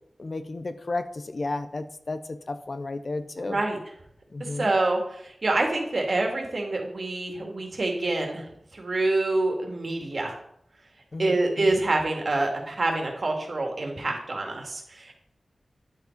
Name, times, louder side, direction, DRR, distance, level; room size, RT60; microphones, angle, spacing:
voice 1, 0.2-3.6 4.3-4.7 11.1-11.8, left 2 dB, 50° left, 9 dB, 0.6 m, -33 dB
voice 2, 3.4-3.8 4.4-8.5 8.7-10.4 11.2-15.1, right 2 dB, 60° right, 1 dB, 2.2 m, -26 dB
10.0 x 5.8 x 4.5 m, 0.73 s
wide cardioid pair, 95°, 0 cm